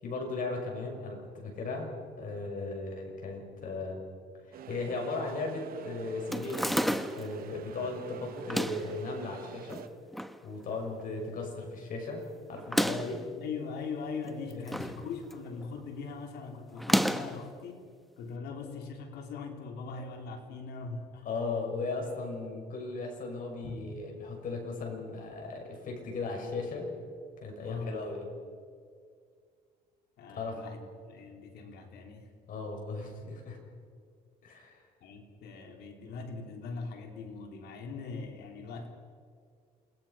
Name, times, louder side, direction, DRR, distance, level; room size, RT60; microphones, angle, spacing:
voice 1, 0.0-4.0 4.4-9.8 10.4-12.2 12.5-13.2 14.5-14.6 21.2-26.9 27.4-28.3 30.3-30.6 32.5-33.6 34.4-34.8, left 3 dB, 55° left, 1 dB, 6.9 m, -37 dB
sound 1, 4.5-9.9, right 10 dB, 60° right, 0.9 m, -47 dB
sound 2, 6.3-7.3 8.4-8.9 9.7-10.4 10.7-10.8 11.0-11.1 12.6-13.2 14.2-15.0 15.3-15.6 16.8-17.4, equal, ahead, 1.0 m, -30 dB
voice 2, 13.4-17.9 18.2-21.3 23.6-23.8 27.6-28.1 30.2-32.3 35.0-38.9, left 4 dB, 75° left, 2 dB, 3.7 m, -41 dB
28.5 x 20.0 x 5.8 m, 2.1 s
cardioid pair, 110°, 17 cm